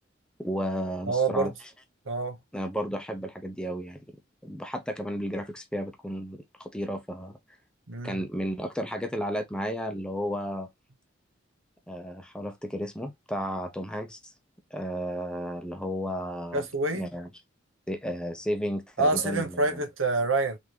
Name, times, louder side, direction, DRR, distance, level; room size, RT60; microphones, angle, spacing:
voice 1, 0.4-1.5 2.5-4.2 4.4-7.4 8.0-10.7 11.9-14.3 14.7-16.7 16.9-17.3 17.9-19.8, equal, 5° left, 0.7 m, -33 dB
voice 2, 1.1-1.5 2.1-2.4 7.9-8.2 16.5-17.1 19.0-20.6, right 3 dB, 85° right, 1.2 m, -26 dB
3.9 x 3.5 x 3.1 m
head